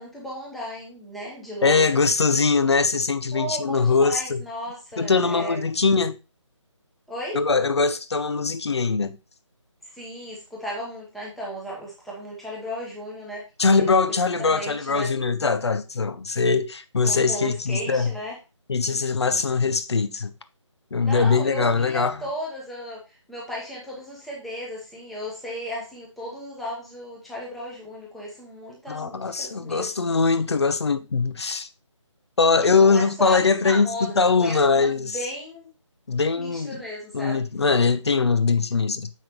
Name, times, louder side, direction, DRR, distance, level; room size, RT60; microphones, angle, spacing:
voice 1, 0.0-1.9 3.3-5.6 7.1-7.4 9.8-13.9 14.4-15.1 17.0-18.4 21.0-30.1 32.6-35.7 36.2-37.4, equal, ahead, 1.0 m, -35 dB
voice 2, 1.6-4.4 5.0-6.2 7.3-9.2 13.6-18.1 18.7-20.3 20.9-22.2 28.9-31.7 32.4-35.2 36.1-36.8 37.1-39.1, left 4 dB, 55° left, 0.7 m, -22 dB
7.2 x 5.9 x 2.9 m
figure-of-eight pair, 160°, 16 cm